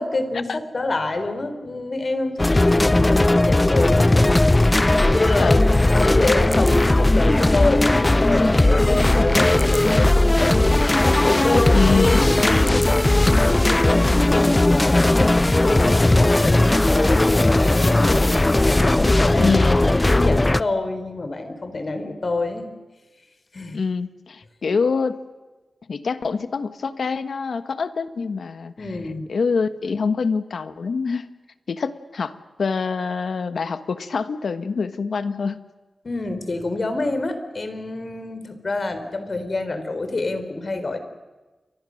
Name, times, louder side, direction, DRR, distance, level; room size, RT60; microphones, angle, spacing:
voice 1, 0.0-22.7 23.5-23.8 28.8-29.3 36.0-41.0, left 2 dB, 50° left, 9 dB, 4.2 m, -27 dB
sound 1, 2.4-20.6, left 2 dB, 25° left, 0.7 m, -17 dB
voice 2, 5.4-6.2 11.7-12.2 19.4-19.8 23.7-25.2 25.9-28.7 29.3-31.3 31.7-35.6, left 5 dB, 80° left, 11 dB, 1.5 m, -25 dB
29.5 x 24.0 x 6.6 m, 1.2 s
wide cardioid pair, 75°, 0 cm